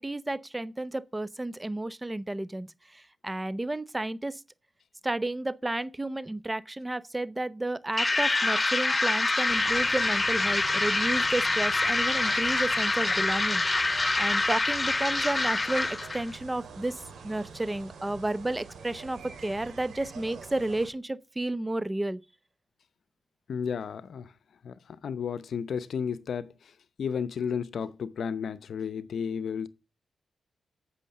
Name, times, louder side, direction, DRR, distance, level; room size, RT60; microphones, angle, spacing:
voice 1, 0.0-2.7 2.9-4.4 5.0-13.6 14.2-22.2, right 2 dB, 15° right, 0.7 m, -32 dB
sound 1, 8.0-16.2, left 2 dB, 25° left, 1.3 m, -26 dB
sound 2, 9.5-20.9, right 5 dB, 75° right, 3.3 m, -46 dB
voice 2, 23.5-24.3 24.6-24.7 25.0-26.5 27.0-29.7, left 7 dB, 70° left, 0.7 m, -32 dB
8.4 x 6.4 x 6.5 m
cardioid pair, 70°, 0 cm